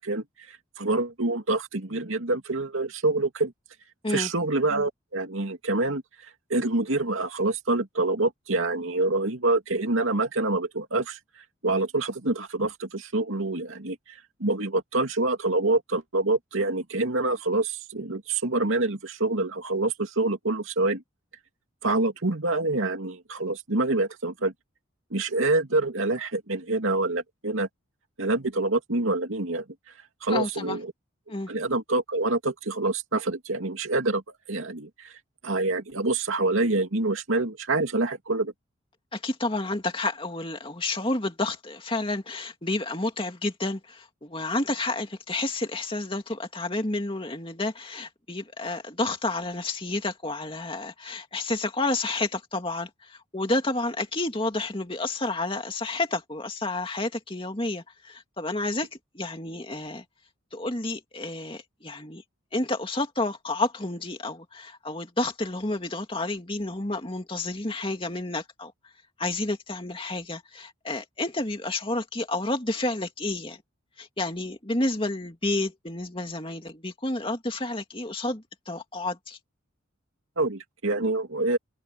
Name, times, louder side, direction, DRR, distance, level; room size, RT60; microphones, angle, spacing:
voice 1, 0.0-3.5 4.1-6.0 6.5-11.2 11.6-14.0 14.4-21.0 21.8-24.5 25.1-27.7 28.2-29.6 30.2-30.9 31.5-34.2 34.5-35.1 35.4-38.5 80.4-81.6, right 2 dB, 75° right, 2.5 m, -26 dB
voice 2, 30.3-30.8 31.3-31.5 39.1-60.0 60.5-62.2 62.5-68.7 69.2-73.6 74.0-79.4, left 2 dB, 25° left, 2.6 m, -30 dB
head